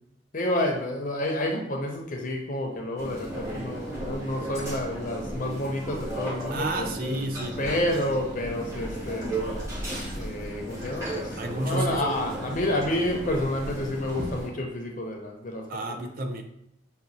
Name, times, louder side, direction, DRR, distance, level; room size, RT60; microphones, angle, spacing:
voice 1, 0.3-6.9 7.6-9.4 10.2-15.7 16.0-16.1, left 1 dB, 40° left, 1 dB, 0.6 m, -29 dB
sound 1, 3.0-14.5, right 1 dB, 15° right, 0.8 m, -35 dB
sound 2, 6.4-6.5 7.4-7.6 8.0-8.2 9.2-9.7 10.1-10.2 10.8-11.3 11.7-11.9 12.8-13.0, equal, 65° right, 1.2 m, -48 dB
voice 2, 6.5-7.9 11.4-12.0 15.7-16.4, right 1 dB, 45° right, 4 dB, 0.5 m, -31 dB
5.8 x 2.2 x 2.6 m, 0.76 s
head